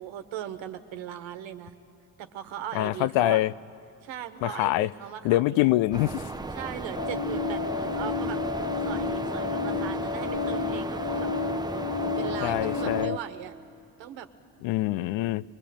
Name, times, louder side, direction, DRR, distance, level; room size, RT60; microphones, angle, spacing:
voice 1, 0.0-1.7 2.2-3.4 4.0-5.7 6.5-8.4 8.8-11.9 12.2-13.5 14.0-14.3, right 10 dB, 70° right, 1.4 m, -39 dB
voice 2, 2.7-3.5 4.4-4.9 5.2-6.2 12.4-13.1 14.6-15.4, left 16 dB, 75° left, 0.6 m, -24 dB
sound 1, 5.9-13.1, right 2 dB, 10° right, 0.8 m, -35 dB
sound 2, 7.0-13.2, left 4 dB, 45° left, 1.0 m, -30 dB
22.5 x 22.0 x 8.6 m
supercardioid pair, 65°, 47 cm